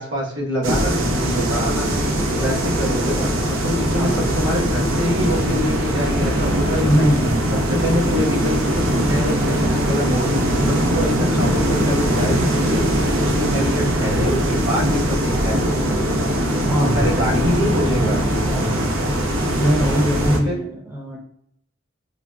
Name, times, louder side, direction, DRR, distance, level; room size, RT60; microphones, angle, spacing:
voice 1, 0.0-1.9 2.3-7.0 7.5-16.0 16.8-18.2 20.4-20.6, equal, 70° right, -4 dB, 1.0 m, -25 dB
sound 1, 0.6-20.4, equal, 90° right, 0.5 m, -21 dB
voice 2, 6.8-7.6 16.4-17.3 18.5-18.8 19.6-21.2, equal, 15° right, -3 dB, 0.7 m, -22 dB
3.7 x 2.0 x 2.2 m, 0.71 s
head